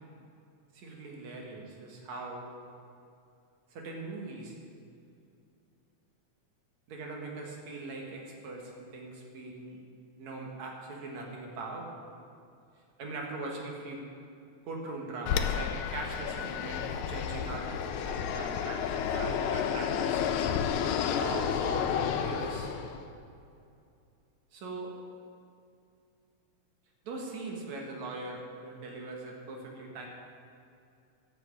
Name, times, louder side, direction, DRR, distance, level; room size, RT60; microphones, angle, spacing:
voice 1, 0.7-2.5 3.7-4.6 6.9-9.8 10.2-11.9 13.0-14.0 14.7-20.2 21.0-22.7 24.5-24.9 27.0-30.1, right 3 dB, 70° right, 0 dB, 2.9 m, -41 dB
Fixed-wing aircraft airplane, 15.3-23.0, left 8 dB, 85° left, 2.1 m, -31 dB
12.5 x 6.3 x 8.1 m, 2.5 s
omnidirectional pair, 3.4 m